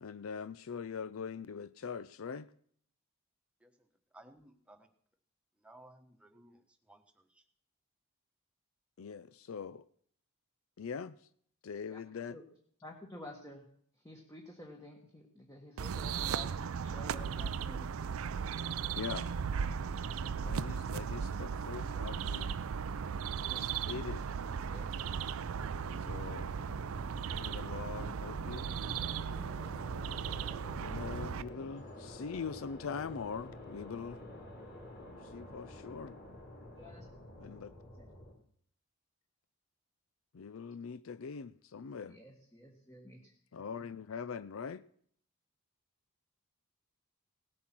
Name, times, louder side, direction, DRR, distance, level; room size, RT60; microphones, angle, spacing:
voice 1, 0.0-2.5 9.0-9.8 10.8-11.2 11.6-12.4 18.9-19.3 20.4-22.6 23.6-24.2 26.0-26.5 27.3-28.7 30.8-34.2 35.3-36.1 37.4-37.7 40.3-42.2 43.5-44.8, left 6 dB, 65° left, 0.4 m, -42 dB
voice 2, 4.1-4.9 5.6-6.6 6.9-7.0, right 1 dB, 5° right, 1.3 m, -57 dB
voice 3, 12.8-13.6 13.9-17.9 23.5-23.7 24.6-25.1 36.8-37.1 37.9-38.1 42.0-43.3, left 1 dB, 15° left, 1.5 m, -51 dB
sound 1, 15.8-31.4, right 6 dB, 70° right, 0.4 m, -37 dB
sound 2, 25.6-38.3, left 1 dB, 50° left, 4.5 m, -49 dB
18.0 x 8.6 x 6.0 m
head